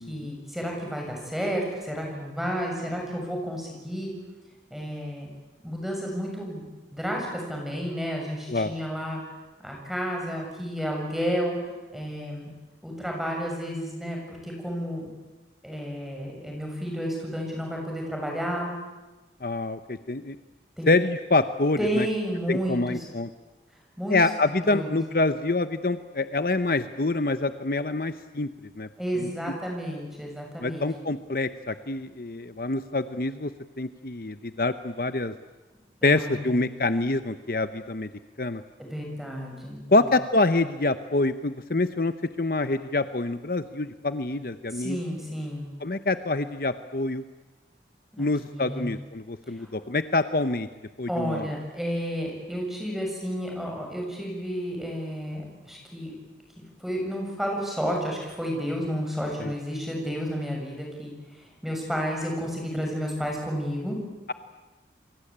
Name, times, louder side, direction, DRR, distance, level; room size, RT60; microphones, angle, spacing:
voice 1, 0.1-4.1 4.7-5.3 5.6-6.6 6.9-9.2 9.6-12.5 12.8-15.1 15.6-18.7 20.8-20.9 21.8-23.1 24.0-24.2 24.4-25.0 29.0-30.9 36.0-36.6 38.8-39.8 44.7-45.7 48.1-48.3 48.5-48.9 49.6-49.7 51.1-56.1 56.8-64.0, equal, ahead, 0 dB, 7.1 m, -31 dB
voice 2, 19.4-20.4 20.9-22.1 22.5-23.3 24.1-28.5 28.8-28.9 29.2-29.3 30.6-33.5 33.8-35.3 36.0-38.1 38.4-38.6 39.9-45.0 45.8-47.2 48.2-50.7 51.0-51.5 59.4-59.5, left 2 dB, 55° left, 11 dB, 0.9 m, -26 dB
29.0 x 23.0 x 8.8 m, 1.1 s
head